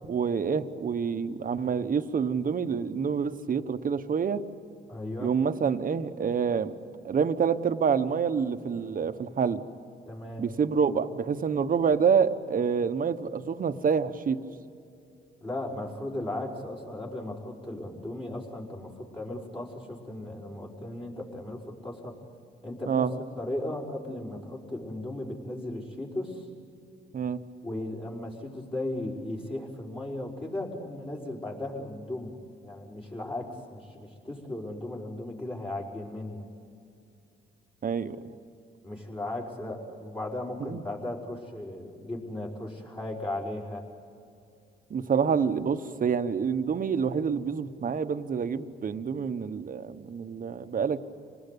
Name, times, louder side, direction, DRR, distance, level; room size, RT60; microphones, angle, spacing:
voice 1, 0.1-4.4 5.2-6.7 7.0-9.6 10.4-14.4 22.9-23.1 27.1-27.4 37.8-38.2 40.6-40.8 44.9-51.0, right 6 dB, 45° right, 10 dB, 1.2 m, -27 dB
voice 2, 4.9-5.3 10.1-10.4 15.4-22.2 22.6-23.1 23.4-26.5 27.6-32.4 32.6-36.5 38.8-43.8, left 1 dB, 25° left, -4 dB, 5.2 m, -36 dB
27.0 x 19.5 x 8.4 m, 2.6 s
cardioid pair, 90°, 20 cm